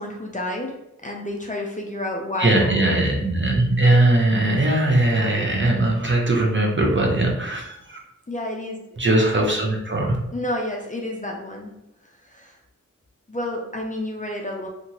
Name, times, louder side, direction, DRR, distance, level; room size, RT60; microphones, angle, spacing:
voice 1, 0.0-2.7 8.3-8.8 9.2-9.6 10.3-11.7 12.2-12.6 13.3-14.7, left 1 dB, 25° left, 0 dB, 0.5 m, -30 dB
voice 2, 2.4-8.0 9.0-10.2, right 2 dB, 40° right, -1 dB, 0.7 m, -20 dB
2.8 x 2.5 x 2.7 m, 0.87 s
wide cardioid pair, 45°, 31 cm